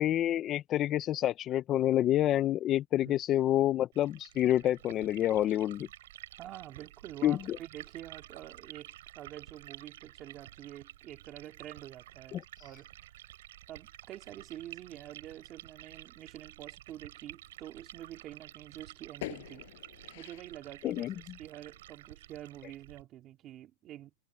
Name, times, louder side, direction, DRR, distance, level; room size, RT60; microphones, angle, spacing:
voice 1, 0.0-5.9 7.2-7.6 12.3-12.4 20.8-21.1, left 12 dB, 20° left, 0.4 m, -28 dB
Liquid, 3.9-23.0, right 14 dB, 55° right, 6.9 m, -51 dB
voice 2, 6.4-12.9 13.7-19.7 20.1-24.1, right 13 dB, 20° right, 2.6 m, -47 dB
sound 1, 16.9-18.6 19.0-21.9, left 17 dB, 45° left, 6.1 m, -48 dB
supercardioid pair, 175°, 0 cm